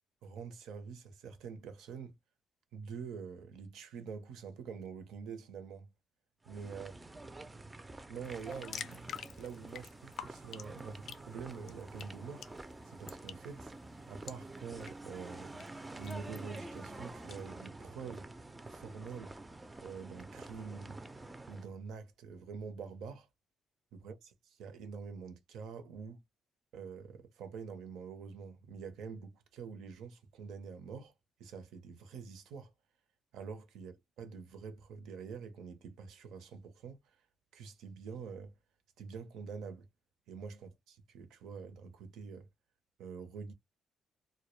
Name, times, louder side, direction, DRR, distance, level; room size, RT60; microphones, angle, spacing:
voice 1, 0.2-2.1 2.7-5.9 6.5-6.9 8.1-9.1 9.4-12.5 12.9-13.7 14.1-15.7 16.0-18.3 18.7-19.4 19.8-21.0 21.5-23.3 23.9-24.1 24.6-26.2 26.7-31.1 31.4-32.7 33.3-37.0 37.5-38.5 39.0-39.9 40.3-42.5 43.0-43.5, right 5 dB, 85° right, 0.6 m, -46 dB
sound 1, 6.5-21.7, right 2 dB, 20° right, 0.3 m, -48 dB
sound 2, 8.2-17.4, left 8 dB, 70° left, 0.3 m, -51 dB
2.1 x 2.0 x 3.0 m
cardioid pair, 90°, 0 cm